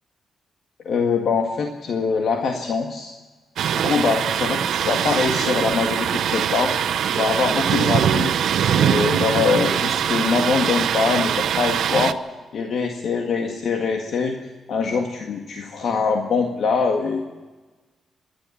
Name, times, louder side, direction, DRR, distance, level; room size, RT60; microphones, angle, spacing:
voice 1, 0.9-3.1 3.7-6.7 7.0-8.3 8.7-12.2 12.5-14.4 14.7-17.2, left 5 dB, 65° left, 3 dB, 1.7 m, -23 dB
Thunder, 3.6-12.1, right 9 dB, 75° right, 0.8 m, -22 dB
27.0 x 11.5 x 8.5 m, 1.3 s
cardioid pair, 130°, 0 cm